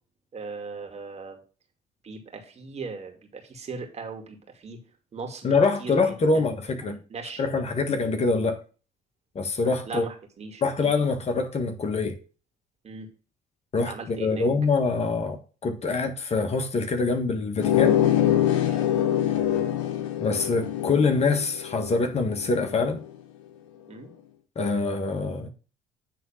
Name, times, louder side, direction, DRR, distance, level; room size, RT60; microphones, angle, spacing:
voice 1, 0.3-1.4 2.0-4.8 5.1-6.5 6.8-7.4 9.8-10.9 12.8-13.1 13.8-14.4 18.7-18.9 23.9-24.1, right 4 dB, 40° right, 2.4 m, -39 dB
voice 2, 5.4-7.0 7.4-8.6 9.3-10.0 10.6-12.2 13.7-18.0 20.2-23.0 24.5-25.5, left 4 dB, 40° left, 1.6 m, -25 dB
sound 1, 17.6-22.8, left 11 dB, 90° left, 0.8 m, -24 dB
9.1 x 3.8 x 5.8 m
hypercardioid pair, 65°, 16 cm